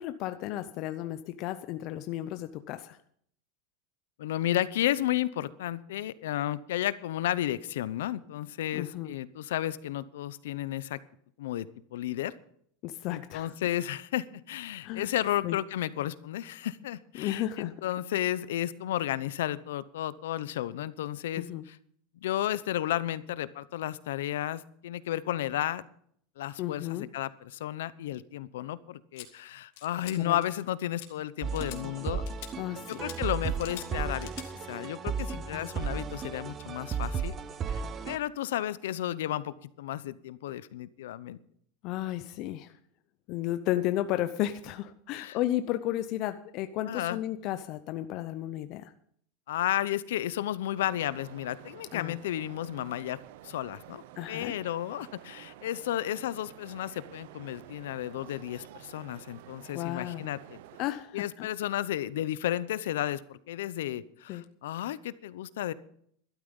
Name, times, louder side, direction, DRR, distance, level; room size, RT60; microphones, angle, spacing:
voice 1, 0.0-3.0 8.7-9.1 12.8-13.5 14.8-15.1 15.4-15.6 17.2-17.7 21.4-21.6 26.6-27.1 30.2-30.4 32.6-33.0 35.4-35.7 41.8-42.7 43.3-48.9 51.9-52.2 54.2-54.5 59.7-60.2 60.8-61.5 64.3-64.4, left 13 dB, 45° left, 10 dB, 0.6 m, -33 dB
voice 2, 4.2-11.0 11.4-12.3 13.1-21.8 22.2-25.8 26.4-32.2 32.9-34.3 34.7-37.3 37.7-41.4 45.1-45.4 46.9-47.2 49.5-53.2 53.4-60.6 61.1-65.7, left 13 dB, 90° left, 17 dB, 0.7 m, -33 dB
sound 1, 29.2-29.3 29.8-30.2 30.4-30.7 31.0-31.1 31.5-31.8 32.3-32.5 32.9-33.2 33.6-33.9 34.2-34.5, left 13 dB, 70° left, 2.2 m, -44 dB
sound 2, 31.4-38.2, right 6 dB, 25° right, 0.6 m, -35 dB
sound 3, 50.8-60.9, right 14 dB, 70° right, 0.7 m, -50 dB
12.5 x 12.5 x 5.4 m, 0.65 s
supercardioid pair, 150°, 0 cm